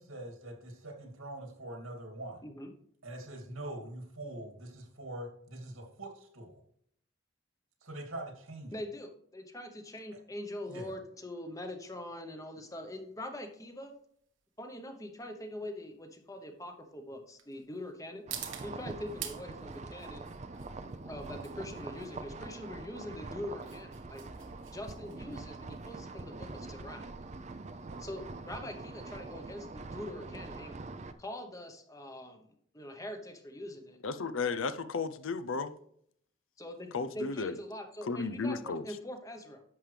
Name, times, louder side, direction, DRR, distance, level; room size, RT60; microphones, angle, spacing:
voice 1, 0.0-2.4 3.0-6.6 7.8-8.7 10.7-10.9, right 1 dB, 85° right, 2.6 m, -43 dB
voice 2, 8.7-13.9 14.6-18.2 18.6-20.3 21.0-24.2 24.7-27.1 28.0-30.8 31.2-34.0 36.6-39.6, left 1 dB, 15° left, 0.9 m, -43 dB
sound 1, 12.7-29.3, right 10 dB, 65° right, 1.1 m, -50 dB
sound 2, 18.3-31.1, right 3 dB, 35° right, 0.5 m, -44 dB
voice 3, 34.0-35.8 36.9-37.6 38.1-38.8, left 4 dB, 75° left, 0.6 m, -34 dB
11.0 x 7.4 x 3.4 m
head